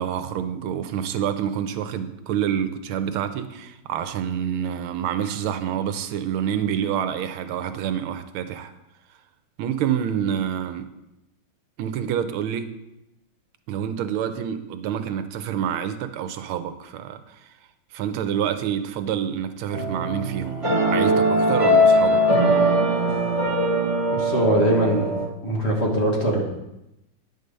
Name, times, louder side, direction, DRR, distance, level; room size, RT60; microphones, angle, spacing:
voice 1, 0.0-8.7 9.6-10.9 11.8-12.7 13.7-17.5 17.9-22.2, right 9 dB, 85° right, 9 dB, 1.5 m, -27 dB
sound 1, 19.7-25.3, equal, 20° right, 1.1 m, -20 dB
voice 2, 24.1-25.1 25.4-26.4, right 1 dB, 35° left, -2 dB, 1.6 m, -21 dB
9.9 x 5.3 x 6.5 m, 0.90 s
omnidirectional pair, 2.3 m